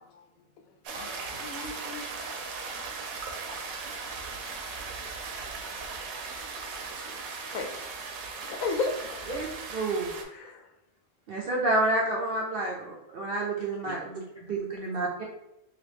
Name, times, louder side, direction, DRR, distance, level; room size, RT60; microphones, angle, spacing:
voice 1, 0.0-0.8 1.3-2.6 3.0-4.0 4.5-4.6 5.6-7.0 7.5-7.8 8.5-9.7 10.3-10.7, left 4 dB, 80° left, 1.0 m, -38 dB
sound 1, 0.8-10.2, right 4 dB, 80° right, 1.0 m, -38 dB
voice 2, 0.9-1.5 2.7-2.9 3.5-3.6 4.6-4.7 5.0-6.5 13.8-13.9, left 2 dB, 60° left, 0.5 m, -51 dB
voice 3, 9.7-10.1 11.3-15.2, right 2 dB, 60° right, 0.6 m, -29 dB
3.1 x 2.9 x 3.3 m
omnidirectional pair, 1.5 m